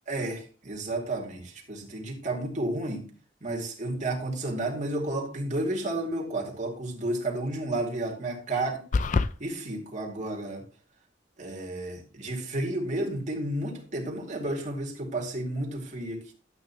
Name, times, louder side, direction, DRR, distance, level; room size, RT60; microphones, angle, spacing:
voice 1, 0.1-3.0 3.4-8.8 9.4-10.6 11.4-16.3, right 2 dB, 40° right, 1 dB, 2.4 m, -32 dB
sound 1, 8.9-9.3, left 4 dB, 40° left, 0.4 m, -24 dB
11.5 x 8.6 x 2.9 m, 0.38 s
head